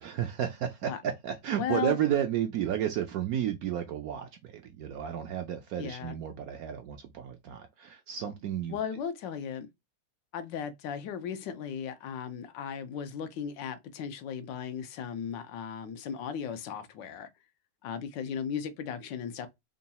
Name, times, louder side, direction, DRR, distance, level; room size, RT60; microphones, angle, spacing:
voice 1, 0.0-8.8, right 10 dB, 70° right, 0.8 m, -32 dB
voice 2, 1.6-2.0 5.8-6.1 8.7-9.7 10.3-17.3 17.8-19.5, left 7 dB, 90° left, 1.4 m, -36 dB
3.7 x 2.3 x 4.0 m
omnidirectional pair, 2.0 m